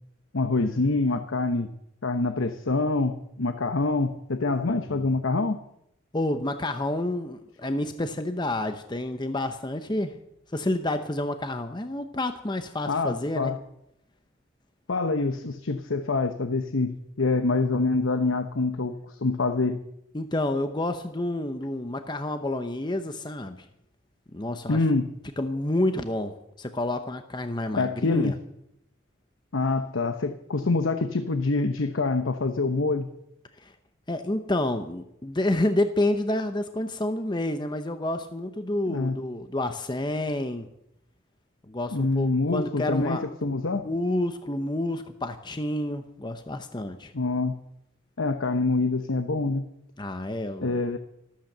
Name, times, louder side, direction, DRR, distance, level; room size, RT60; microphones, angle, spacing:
voice 1, 0.3-1.7 2.0-5.6 12.9-13.6 14.9-19.8 24.7-25.1 27.7-28.3 29.5-33.1 38.9-39.2 41.9-43.9 47.1-47.6 48.2-49.7 50.6-51.0, left 3 dB, 80° left, 9 dB, 0.9 m, -25 dB
voice 2, 6.1-10.2 10.5-13.5 20.1-23.7 24.3-24.8 25.4-28.3 33.6-33.7 34.1-40.7 41.7-43.2 43.8-47.1 50.0-50.8, left 1 dB, 20° left, 8 dB, 0.8 m, -29 dB
13.5 x 13.5 x 6.7 m, 0.78 s
head